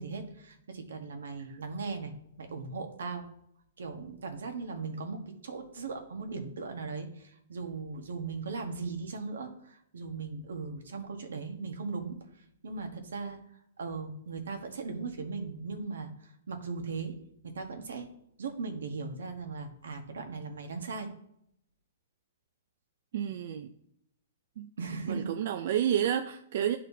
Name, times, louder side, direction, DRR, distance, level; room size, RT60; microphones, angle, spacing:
voice 1, 0.0-3.3 3.8-12.2 12.6-13.4 13.8-17.2 17.4-18.1 18.4-21.1 24.8-25.4, right 4 dB, 85° right, 1.2 m, -38 dB
voice 2, 23.1-23.7 24.6-24.7 25.1-26.8, right 10 dB, 60° right, 0.4 m, -30 dB
10.5 x 4.2 x 2.7 m
hypercardioid pair, 135°, 0 cm